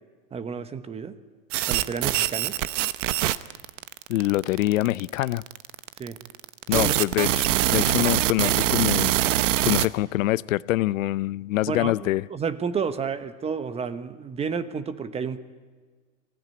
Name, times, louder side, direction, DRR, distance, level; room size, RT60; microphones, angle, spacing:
voice 1, 0.3-1.1 1.6-2.5 6.0-6.2 6.7-7.0 11.7-15.4, right 6 dB, 15° right, 12 dB, 1.0 m, -31 dB
sound 1, 1.5-9.9, right 13 dB, 65° right, 1.0 m, -24 dB
voice 2, 4.1-5.4 6.7-9.2 9.6-12.3, left 16 dB, 70° left, 20 dB, 0.6 m, -25 dB
24.0 x 16.0 x 9.4 m, 1.5 s
hypercardioid pair, 130°, 40 cm